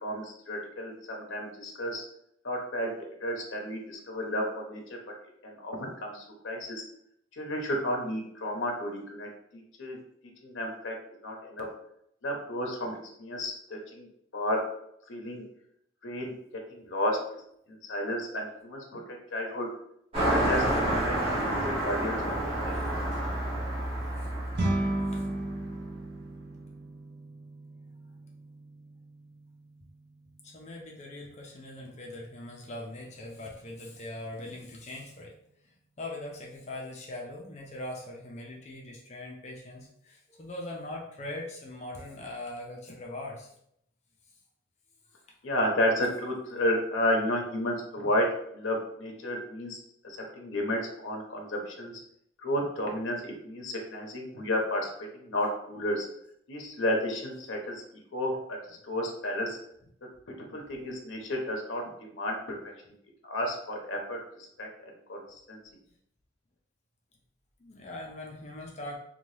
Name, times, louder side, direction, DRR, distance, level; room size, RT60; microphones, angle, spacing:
voice 1, 0.0-2.0 2.4-2.9 3.2-4.8 5.4-6.8 7.3-10.0 10.4-10.9 11.2-11.7 12.2-14.1 14.3-14.6 15.1-15.4 16.0-16.3 16.7-17.2 17.7-19.7 20.2-21.2 21.5-22.4 22.6-22.9 45.4-48.3 48.5-51.9 52.4-56.1 56.5-59.6 60.5-62.6 63.3-64.2 64.6-64.7 65.1-65.2 65.5-65.6, left 1 dB, 80° left, 0 dB, 0.6 m, -32 dB
Car passing by, 20.1-26.0, right 1 dB, 30° right, 0.9 m, -29 dB
sound 1, 24.5-34.0, right 1 dB, 55° right, 0.5 m, -37 dB
voice 2, 30.4-35.3 35.6-43.5 67.6-69.0, left 1 dB, 35° left, -1 dB, 0.4 m, -41 dB
2.7 x 2.2 x 3.1 m, 0.72 s
head